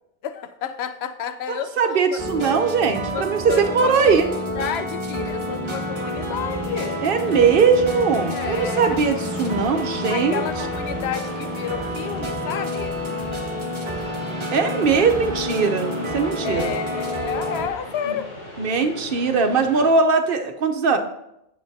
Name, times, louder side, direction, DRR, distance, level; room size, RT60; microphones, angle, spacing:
voice 1, 0.2-2.2 3.1-4.2 4.6-7.0 8.3-9.0 10.1-13.0 16.4-18.4, left 8 dB, 85° left, 11 dB, 0.8 m, -31 dB
voice 2, 1.5-4.3 7.0-10.4 14.5-16.7 18.0-18.1 18.6-21.0, right 5 dB, 65° right, 6 dB, 0.8 m, -20 dB
sound 1, 2.2-17.7, equal, 30° right, 0.9 m, -29 dB
sound 2, 5.1-19.9, left 1 dB, 65° left, 3.7 m, -39 dB
9.4 x 6.9 x 2.6 m, 0.84 s
omnidirectional pair, 1.1 m